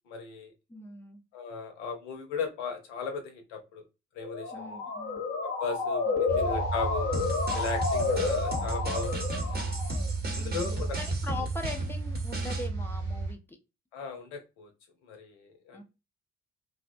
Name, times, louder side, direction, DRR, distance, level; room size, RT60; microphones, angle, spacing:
voice 1, 0.1-0.5 1.3-3.8 4.1-4.8 5.4-7.1 7.5-9.6 10.3-11.0 13.9-14.7 15.0-15.8, left 5 dB, 70° left, 5 dB, 0.7 m, -37 dB
voice 2, 0.7-1.2 4.5-5.2 6.3-6.4 10.3-13.6 15.7-15.8, left 2 dB, 5° left, 4 dB, 0.5 m, -41 dB
Motor vehicle (road) / Siren, 4.2-10.1, left 4 dB, 35° left, 0.8 m, -31 dB
sound 1, 6.3-13.3, right 3 dB, 65° right, 1.1 m, -33 dB
sound 2, 7.1-12.7, right 2 dB, 25° right, 0.8 m, -36 dB
2.5 x 2.1 x 2.5 m, 0.27 s
figure-of-eight pair, 40°, 37 cm